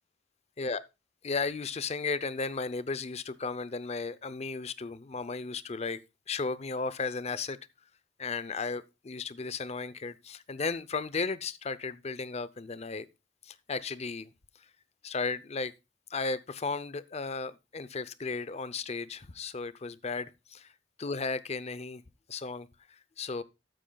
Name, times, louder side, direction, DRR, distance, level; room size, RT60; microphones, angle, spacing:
voice 1, 1.2-6.0 6.3-7.6 8.2-13.1 13.4-14.3 15.0-15.7 16.1-20.7 21.0-22.0 22.3-22.7 23.2-23.4, left 4 dB, 35° left, 0.6 m, -35 dB
13.0 x 8.9 x 2.3 m
head